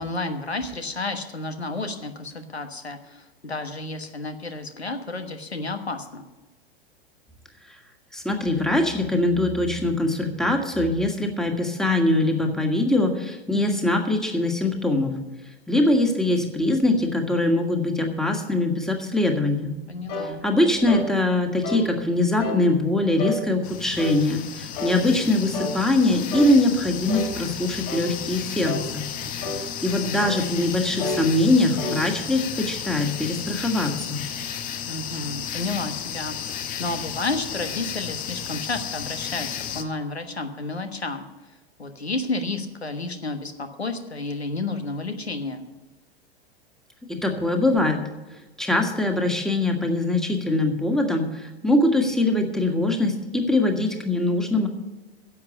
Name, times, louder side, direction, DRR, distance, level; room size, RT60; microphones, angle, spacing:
voice 1, 0.0-6.3 19.9-20.4 29.2-29.6 34.9-41.2 41.8-45.7, left 2 dB, 85° left, 8 dB, 1.3 m, -31 dB
voice 2, 8.1-15.1 15.7-19.7 20.2-29.0 29.5-34.2 47.1-48.0 48.6-54.7, left 2 dB, ahead, 3 dB, 1.6 m, -22 dB
sound 1, 20.1-20.3 20.9-21.1 21.6-21.9 22.4-22.6 23.2-23.4 24.0-24.2 24.8-25.0 25.5-25.8 26.3-26.6 27.1-27.3 27.9-28.1 28.6-28.9 29.4-29.6 30.2-30.4 31.0-31.2 31.8-32.0, left 2 dB, 40° left, 3.3 m, -30 dB
sound 2, 23.6-39.8, left 8 dB, 25° left, 0.8 m, -33 dB
10.5 x 7.4 x 8.4 m, 1.1 s
figure-of-eight pair, 95°, 31 cm